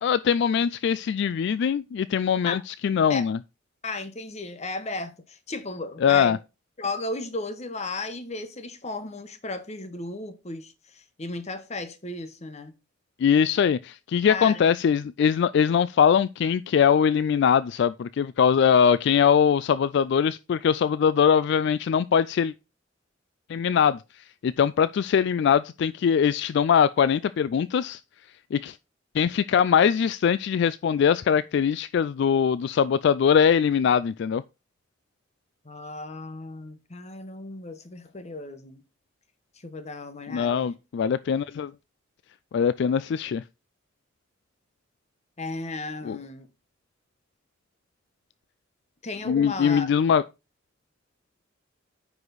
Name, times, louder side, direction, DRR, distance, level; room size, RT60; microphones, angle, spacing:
voice 1, 0.0-3.4 6.0-6.4 13.2-22.5 23.5-28.0 28.5-28.8 29.1-34.4 40.3-41.7 42.5-43.4 46.0-46.2 49.3-50.2, left 7 dB, 60° left, 0.3 m, -22 dB
voice 2, 3.8-6.4 6.8-12.7 14.3-14.6 35.6-38.8 39.6-40.8 45.4-46.5 49.0-49.9, left 2 dB, 35° left, 1.1 m, -35 dB
9.7 x 4.9 x 4.0 m
head